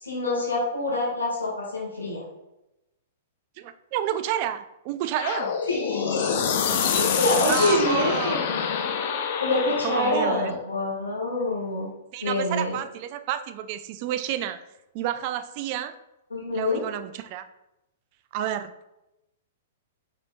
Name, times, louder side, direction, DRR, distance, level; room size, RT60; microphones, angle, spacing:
voice 1, 0.0-2.2 5.7-6.4 6.8-8.8 9.4-11.9 12.2-12.8 16.3-16.8, left 2 dB, 80° left, -3 dB, 1.5 m, -26 dB
voice 2, 3.6-5.6 7.4-8.4 9.8-10.5 12.1-14.6 14.9-15.9 16.5-17.4 18.3-18.7, right 10 dB, 45° right, 11 dB, 0.3 m, -30 dB
sound 1, 5.2-10.3, left 6 dB, 50° left, 0.5 m, -26 dB
5.0 x 4.2 x 2.3 m, 0.92 s
figure-of-eight pair, 105°, 0 cm